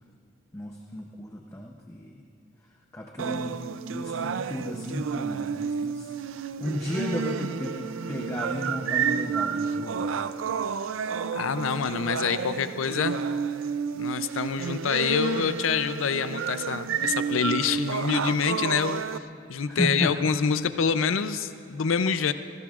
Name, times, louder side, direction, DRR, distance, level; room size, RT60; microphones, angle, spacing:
voice 1, 0.5-2.2 2.9-3.6 3.9-10.2 19.7-20.1, left 1 dB, 15° left, 0 dB, 0.7 m, -33 dB
sound 1, 3.2-19.2, right 6 dB, 85° right, 0.4 m, -30 dB
voice 2, 11.3-13.2 13.9-19.0 19.5-22.3, left 6 dB, 90° left, 11 dB, 0.5 m, -26 dB
24.5 x 19.0 x 2.4 m, 2.5 s
head